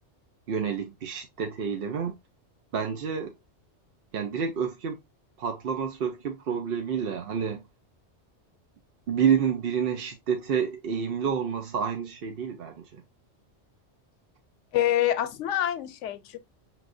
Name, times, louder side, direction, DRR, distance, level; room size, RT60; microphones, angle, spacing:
voice 1, 0.5-2.2 2.7-3.3 4.1-5.0 5.4-7.6 9.1-13.0, right 7 dB, 60° right, 0.7 m, -29 dB
voice 2, 14.7-16.4, left 11 dB, 85° left, 0.9 m, -26 dB
5.8 x 3.1 x 2.5 m
omnidirectional pair, 1.2 m